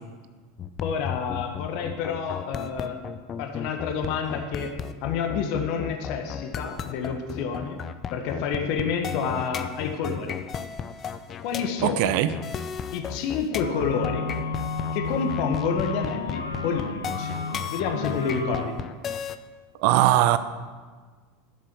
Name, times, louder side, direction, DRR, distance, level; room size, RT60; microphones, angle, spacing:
sound 1, 0.6-19.4, left 7 dB, 35° left, 0.7 m, -34 dB
voice 1, 0.8-3.0 3.4-4.7 5.0-7.8 8.1-10.4 11.4-12.2 12.9-14.3 14.9-17.3 17.7-18.7, left 6 dB, 55° left, 4 dB, 1.5 m, -29 dB
voice 2, 11.8-12.3 19.8-20.4, right 14 dB, 60° right, 14 dB, 0.6 m, -20 dB
sound 2, 13.6-18.6, left 4 dB, 85° left, 0.9 m, -32 dB
12.5 x 7.5 x 6.2 m, 1.5 s
figure-of-eight pair, 80°, 0 cm